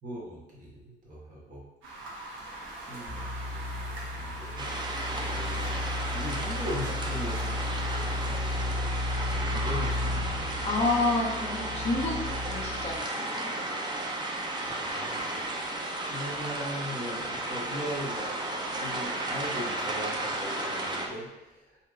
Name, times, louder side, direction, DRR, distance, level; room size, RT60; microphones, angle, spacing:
voice 1, 0.0-1.6 2.8-4.7 5.2-5.8 6.1-10.9 14.6-15.3 16.1-18.3 18.7-21.8, equal, 40° right, -5 dB, 1.0 m, -40 dB
sound 1, 1.8-20.4, right 2 dB, 80° right, 0.7 m, -46 dB
sound 2, 3.1-13.0, left 2 dB, 85° left, 0.4 m, -34 dB
sound 3, 4.6-21.1, right 1 dB, 20° right, 0.3 m, -34 dB
voice 2, 10.6-12.2 12.5-13.5, left 2 dB, 30° left, -3 dB, 0.5 m, -29 dB
2.7 x 2.1 x 2.3 m, 1.0 s
cardioid pair, 90°, 20 cm